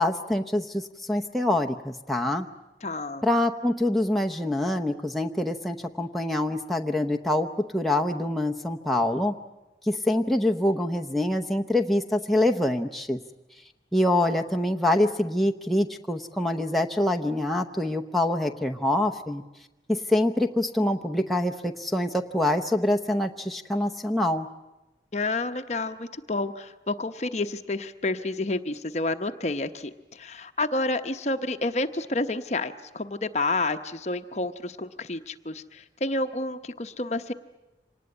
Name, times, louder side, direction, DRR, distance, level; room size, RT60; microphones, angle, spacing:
voice 1, 0.0-2.5 3.2-7.5 7.7-9.3 9.8-13.2 13.9-19.4 19.9-24.5, left 1 dB, ahead, 2 dB, 0.8 m, -25 dB
voice 2, 2.8-3.2 25.1-37.3, left 2 dB, 40° left, 8 dB, 0.9 m, -29 dB
25.5 x 19.5 x 9.6 m, 1.0 s
head